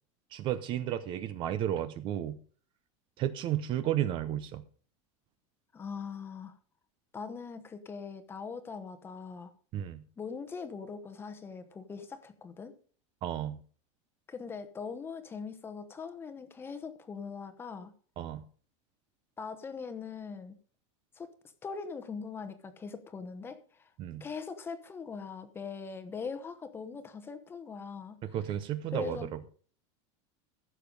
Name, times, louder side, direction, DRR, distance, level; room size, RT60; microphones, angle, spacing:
voice 1, 0.3-2.4 3.2-4.6 9.7-10.0 13.2-13.6 18.2-18.4 24.0-24.3 28.2-29.5, right 11 dB, 30° right, 0.7 m, -33 dB
voice 2, 5.7-6.6 7.1-9.5 10.2-12.7 14.3-17.9 19.4-20.6 21.2-21.3 21.6-23.9 24.2-28.2 28.9-29.3, left 5 dB, 15° left, 1.0 m, -41 dB
15.5 x 6.9 x 5.3 m
supercardioid pair, 170°, 16 cm